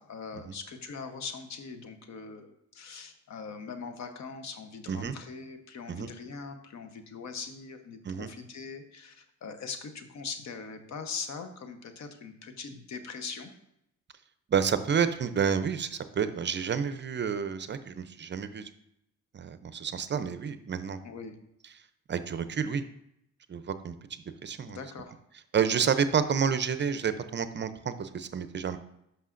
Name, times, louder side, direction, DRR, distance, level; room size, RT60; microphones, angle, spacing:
voice 1, 0.0-13.5 21.0-21.3 24.7-25.1, left 5 dB, 65° left, 7 dB, 1.0 m, -41 dB
voice 2, 14.5-18.7 19.3-21.0 22.1-22.8 23.5-24.8 25.5-28.8, right 7 dB, 40° right, 11 dB, 0.5 m, -29 dB
11.0 x 5.7 x 2.5 m, 0.78 s
cardioid pair, 90°, 30 cm